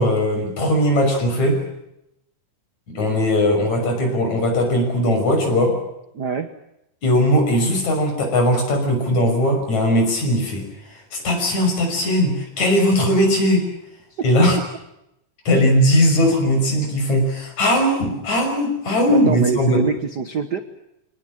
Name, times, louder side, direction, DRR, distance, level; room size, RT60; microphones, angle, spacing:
voice 1, 0.0-1.6 2.9-5.8 7.0-13.7 14.2-14.6 15.5-19.8, equal, 60° left, 3 dB, 7.3 m, -19 dB
voice 2, 6.1-6.5 14.1-14.2 19.1-20.6, right 5 dB, 60° right, 9 dB, 1.1 m, -24 dB
25.5 x 20.0 x 9.0 m, 0.83 s
omnidirectional pair, 3.7 m